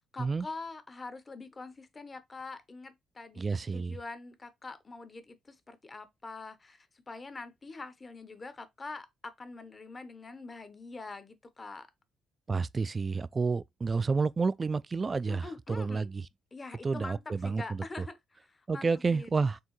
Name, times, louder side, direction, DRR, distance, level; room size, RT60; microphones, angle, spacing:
voice 1, 0.1-3.5 3.7-11.9 15.3-16.1 16.5-19.5, left 3 dB, 25° left, 0.8 m, -44 dB
voice 2, 3.4-4.0 12.5-16.3 16.8-18.1 18.7-19.6, right 4 dB, 25° right, 0.3 m, -30 dB
4.5 x 3.5 x 3.0 m
cardioid pair, 115°, 0 cm